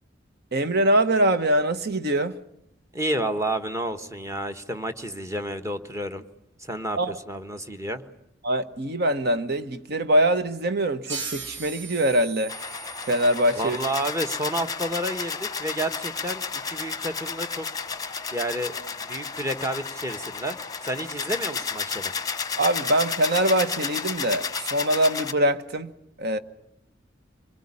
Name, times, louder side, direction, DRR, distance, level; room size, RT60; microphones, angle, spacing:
voice 1, 0.5-2.4 7.0-7.2 8.4-12.6 13.1-13.8 22.6-25.9 26.2-26.4, right 1 dB, 60° right, 1.2 m, -23 dB
voice 2, 2.9-6.2 6.6-8.0 13.6-17.7 18.3-18.7 19.0-22.1, right 1 dB, 15° right, 1.3 m, -30 dB
sound 1, 11.1-14.3, right 5 dB, 80° right, 2.5 m, -39 dB
sound 2, 12.5-25.3, left 5 dB, 20° left, 1.0 m, -32 dB
26.5 x 21.5 x 9.9 m
head